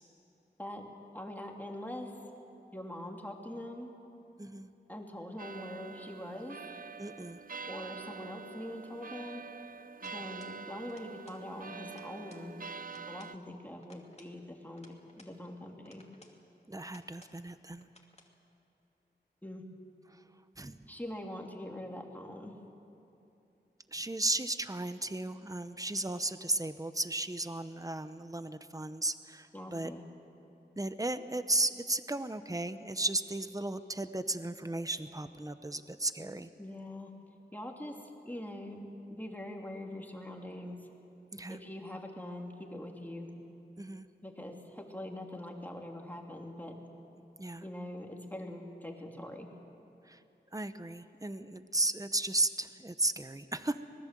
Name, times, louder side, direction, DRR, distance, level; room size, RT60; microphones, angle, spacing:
voice 1, 1.1-2.1 2.7-3.9 4.9-6.6 7.6-9.4 10.0-12.6 13.1-14.9 15.1-16.0 19.4-19.6 20.9-22.5 29.5-30.0 36.6-37.1 37.5-37.9 38.2-40.8 41.5-43.3 44.2-46.7 47.6-49.5, left 1 dB, 10° left, 1 dB, 3.1 m, -43 dB
voice 2, 4.4-4.7 7.0-7.4 16.7-17.9 20.1-20.2 20.6-20.8 23.9-29.9 30.7-36.5 41.3-41.6 43.8-44.1 47.4-47.7 50.1-50.2 50.5-53.8, right 2 dB, 20° right, 11 dB, 0.9 m, -35 dB
sound 1, 5.4-13.4, right 5 dB, 50° right, 0.5 m, -46 dB
sound 2, 10.0-10.6 10.8-11.5 11.7-12.5 12.8-13.4 13.8-15.4 15.8-16.4 16.8-17.4 17.8-18.3, left 1 dB, 35° left, 2.7 m, -60 dB
25.5 x 20.0 x 7.7 m, 2.8 s
wide cardioid pair, 50°, 18 cm